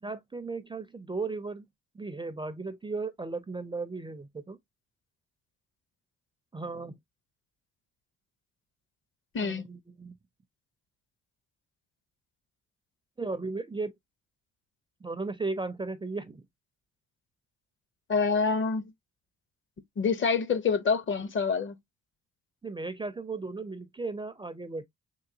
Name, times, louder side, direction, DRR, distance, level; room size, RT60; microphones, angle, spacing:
voice 1, 0.0-1.6 1.9-4.6 6.5-7.0 9.4-10.2 13.2-13.9 15.0-16.4 22.6-24.8, right 3 dB, 15° right, 0.4 m, -36 dB
voice 2, 18.1-18.9 20.0-21.8, left 5 dB, 40° left, 0.7 m, -26 dB
3.8 x 2.6 x 2.6 m
cardioid pair, 90°, 30 cm